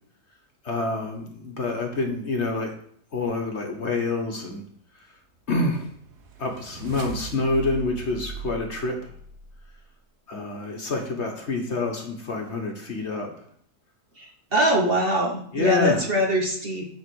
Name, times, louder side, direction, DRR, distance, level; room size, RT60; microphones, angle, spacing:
voice 1, 0.6-2.7 3.1-4.6 5.5-5.9 6.4-8.9 10.3-13.3 15.5-16.0, left 3 dB, 45° left, 2 dB, 1.5 m, -27 dB
sound 1, 5.5-9.7, right 5 dB, 80° right, 1.6 m, -40 dB
voice 2, 14.2-16.9, equal, 40° right, 0 dB, 1.3 m, -23 dB
9.5 x 4.3 x 6.2 m, 0.63 s
omnidirectional pair, 1.7 m